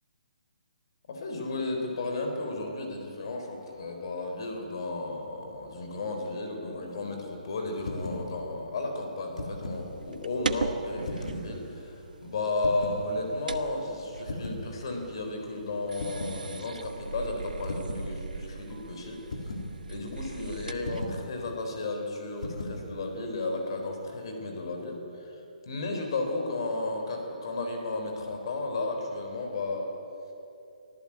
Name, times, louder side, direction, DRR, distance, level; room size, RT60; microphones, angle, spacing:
voice 1, 1.1-19.2 19.9-25.3 25.7-29.9, left 2 dB, 35° left, 3 dB, 3.8 m, -33 dB
sound 1, 7.8-8.3 9.2-9.9 11.0-11.5 12.6-13.0 14.3-14.7 16.0-16.4 17.6-18.1 19.3-19.7 20.8-21.2 22.4-22.8, left 2 dB, 55° left, 3.5 m, -36 dB
sound 2, 9.7-21.2, right 4 dB, 85° right, 1.2 m, -40 dB
24.0 x 15.5 x 8.6 m, 2.9 s
hypercardioid pair, 180°, 4 cm